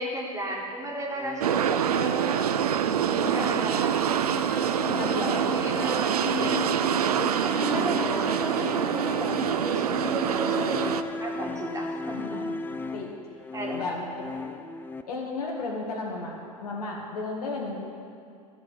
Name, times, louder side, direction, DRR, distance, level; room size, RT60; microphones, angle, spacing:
voice 1, 0.0-2.5 2.9-4.0 4.9-6.7 7.2-12.4 13.5-13.8, right 2 dB, 15° right, -2 dB, 2.0 m, -34 dB
sound 1, 1.1-15.0, left 3 dB, 10° left, 0.4 m, -36 dB
sound 2, 1.4-11.0, right 9 dB, 85° right, 0.4 m, -26 dB
voice 2, 3.2-3.6 4.9-5.6 7.7-7.9 12.1-12.5 12.9-13.1 13.7-14.1 14.3-14.4 15.1-16.4 16.6-17.8, left 3 dB, 80° left, -1 dB, 2.0 m, -33 dB
13.0 x 4.7 x 7.6 m, 2.3 s
hypercardioid pair, 85°, 19 cm